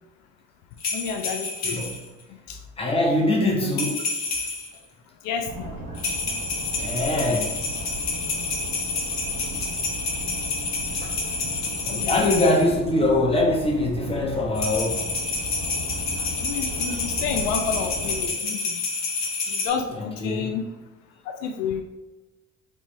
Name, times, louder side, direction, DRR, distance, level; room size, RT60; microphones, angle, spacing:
sound 1, 0.8-2.1 3.7-4.8 5.9-12.6 14.5-19.7, left 3 dB, 45° left, 0.9 m, -29 dB
voice 1, 0.9-1.8 2.5-2.6 3.6-3.8 5.2-5.8 11.9-12.4 16.2-18.8 19.5-19.9 20.2-20.6 21.4-21.8, left 7 dB, 70° left, 4 dB, 0.5 m, -30 dB
voice 2, 1.6-2.0 2.8-4.0 5.9-6.0 6.8-7.6 8.2-8.3 11.0-11.1 11.8-15.0 19.9-20.5, left 2 dB, 15° left, -2 dB, 0.9 m, -23 dB
sound 2, 5.5-18.3, right 1 dB, 60° right, 0.9 m, -36 dB
3.3 x 2.9 x 2.7 m, 1.1 s
hypercardioid pair, 60°, 38 cm